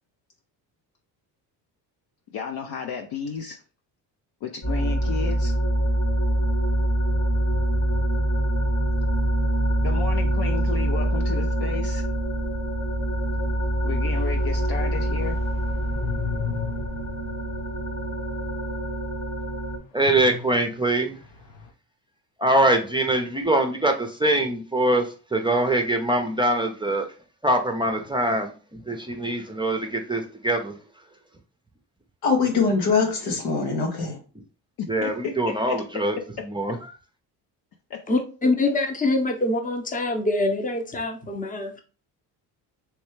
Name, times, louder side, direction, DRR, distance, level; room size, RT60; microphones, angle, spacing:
voice 1, 2.3-3.6 4.4-5.5 9.8-12.0 13.8-15.4 34.8-35.8 37.9-38.0, left 6 dB, 50° left, 0.6 m, -32 dB
sound 1, 4.6-19.8, right 1 dB, 35° left, 1.1 m, -25 dB
sound 2, 14.1-18.5 18.8-19.0 20.0-21.7, left 7 dB, 75° left, 1.0 m, -37 dB
voice 2, 19.9-21.2 22.4-25.1 25.3-27.1 27.4-28.5 28.9-30.8 34.9-36.2 36.5-36.7, right 1 dB, 10° right, 0.6 m, -23 dB
voice 3, 32.2-34.2, left 4 dB, 90° left, 1.3 m, -22 dB
voice 4, 38.1-41.8, left 2 dB, 15° left, 0.8 m, -24 dB
3.2 x 3.1 x 3.1 m
supercardioid pair, 70°, 47 cm